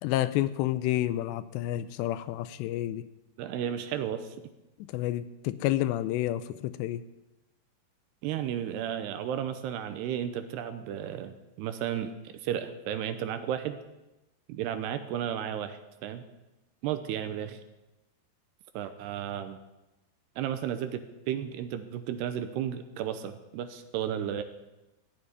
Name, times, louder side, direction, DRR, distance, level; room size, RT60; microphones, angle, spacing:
voice 1, 0.0-3.0 4.9-7.0, left 14 dB, 80° left, 14 dB, 2.7 m, -29 dB
voice 2, 3.4-4.4 8.2-12.1 12.4-13.8 14.5-16.2 16.8-17.6 18.7-19.6 20.4-24.4, right 10 dB, 80° right, 9 dB, 2.7 m, -33 dB
16.0 x 6.7 x 9.8 m, 1.0 s
omnidirectional pair, 5.1 m